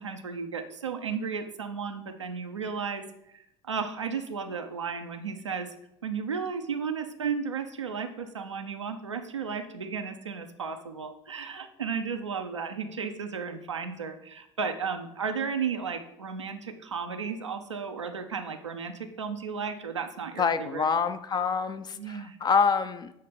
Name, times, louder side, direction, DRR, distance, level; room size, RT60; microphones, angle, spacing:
voice 1, 0.0-5.7 6.0-20.8 21.9-22.4, right 6 dB, 85° right, 5 dB, 0.5 m, -34 dB
voice 2, 20.4-23.1, left 5 dB, 30° left, 11 dB, 0.5 m, -26 dB
6.5 x 3.3 x 5.8 m, 0.80 s
figure-of-eight pair, 65°, 15 cm